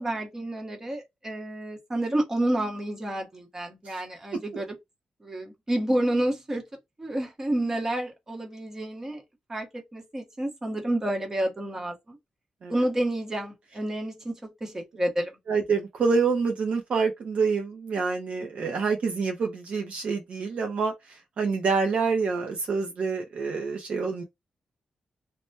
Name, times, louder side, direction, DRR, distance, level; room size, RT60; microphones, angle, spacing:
voice 1, 0.0-4.7 5.2-6.6 7.0-9.2 9.5-12.2 12.7-15.3, right 1 dB, 20° right, 0.9 m, -29 dB
voice 2, 15.5-24.2, right 4 dB, 55° right, 0.6 m, -27 dB
3.2 x 2.1 x 2.6 m
wide cardioid pair, 175°, 3 cm